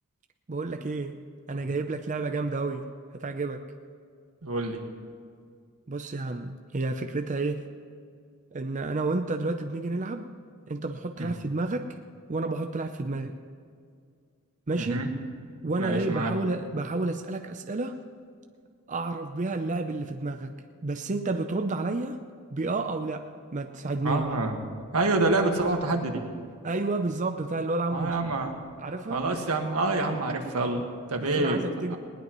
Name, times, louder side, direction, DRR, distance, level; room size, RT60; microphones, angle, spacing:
voice 1, 0.5-1.2 1.5-2.9 3.1-3.6 5.9-7.7 8.5-10.3 10.7-12.0 12.3-13.4 14.7-15.0 15.6-18.0 18.9-20.5 20.8-22.2 22.5-24.2 26.6-28.2 28.8-29.3 31.2-32.0, right 3 dB, 35° right, 6 dB, 0.6 m, -30 dB
voice 2, 4.4-4.8 11.2-11.3 14.8-15.1 15.8-16.3 24.0-24.5 24.9-26.2 27.9-28.5 29.1-31.6 31.9-32.0, right 2 dB, 85° right, 3 dB, 1.7 m, -27 dB
20.0 x 18.5 x 3.1 m, 2.2 s
head